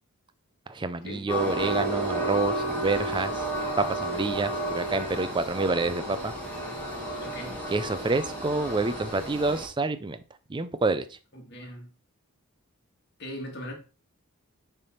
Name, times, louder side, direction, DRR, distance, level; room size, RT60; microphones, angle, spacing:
voice 1, 0.7-3.5 3.8-6.3 7.7-10.2 10.5-11.0, right 3 dB, 20° right, 0.4 m, -28 dB
Train, 1.3-9.7, right 1 dB, 10° left, 1.8 m, -32 dB
voice 2, 7.2-7.7 11.3-11.9 13.2-13.7, left 1 dB, 50° left, 1.8 m, -40 dB
6.9 x 3.5 x 4.2 m
head